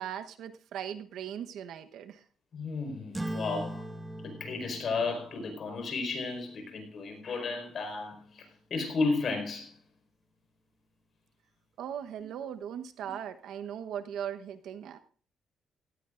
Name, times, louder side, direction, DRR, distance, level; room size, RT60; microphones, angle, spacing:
voice 1, 0.0-2.2 11.8-15.0, right 9 dB, 80° right, 1.1 m, -39 dB
voice 2, 2.5-3.8 4.2-9.7, left 3 dB, 55° left, 5.0 m, -33 dB
sound 1, 3.1-8.0, right 1 dB, 15° right, 1.6 m, -42 dB
16.5 x 15.5 x 2.6 m
cardioid pair, 90°, 0 cm